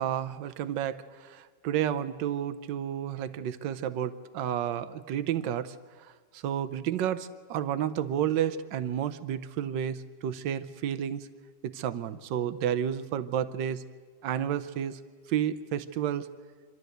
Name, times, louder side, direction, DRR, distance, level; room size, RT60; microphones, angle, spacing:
voice 1, 0.0-11.3 11.7-13.8 14.2-15.0 15.3-16.3, right 10 dB, 85° right, 11 dB, 1.5 m, -31 dB
26.5 x 12.5 x 7.9 m, 1.5 s
omnidirectional pair, 1.9 m